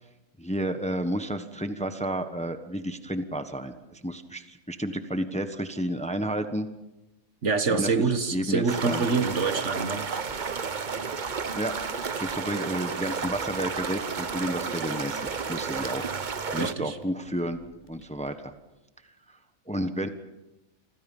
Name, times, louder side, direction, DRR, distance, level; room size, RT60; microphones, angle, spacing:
voice 1, 0.4-6.7 7.7-8.0 8.3-9.1 11.5-16.0 16.5-17.6 17.9-18.5 19.3-19.4 19.7-20.1, right 1 dB, 5° left, 8 dB, 1.1 m, -31 dB
voice 2, 7.4-10.1 16.6-17.0, right 4 dB, 55° right, 9 dB, 1.7 m, -26 dB
sound 1, 8.7-16.7, right 5 dB, 40° right, 1.0 m, -32 dB
sound 2, 10.3-18.3, left 1 dB, 35° left, 6.6 m, -53 dB
28.0 x 26.0 x 5.5 m, 0.99 s
omnidirectional pair, 1.5 m